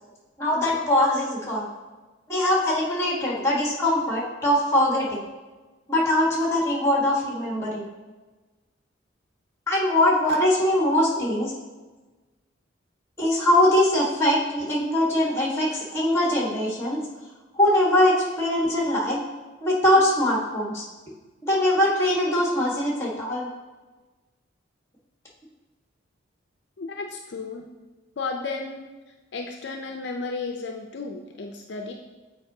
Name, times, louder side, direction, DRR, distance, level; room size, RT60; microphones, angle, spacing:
voice 1, 0.4-1.7 2.3-5.2 5.9-7.8 9.7-11.5 13.2-17.0 17.5-19.2 19.6-20.8 21.4-23.5, left 1 dB, 15° left, -3 dB, 1.3 m, -22 dB
voice 2, 26.8-27.7 28.2-28.9 29.3-31.9, left 4 dB, 60° left, 2 dB, 0.5 m, -33 dB
8.1 x 4.6 x 2.7 m, 1.2 s
head